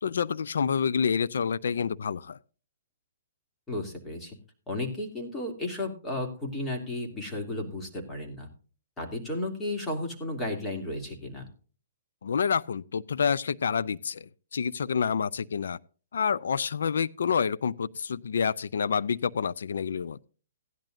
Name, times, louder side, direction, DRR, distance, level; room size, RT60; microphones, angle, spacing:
voice 1, 0.0-2.4 12.2-15.8 16.1-20.2, left 6 dB, 80° left, 0.4 m, -28 dB
voice 2, 3.7-4.3 4.7-8.5 9.0-11.5, left 1 dB, 10° left, 2.7 m, -33 dB
16.0 x 10.5 x 2.6 m
hypercardioid pair, 145°, 0 cm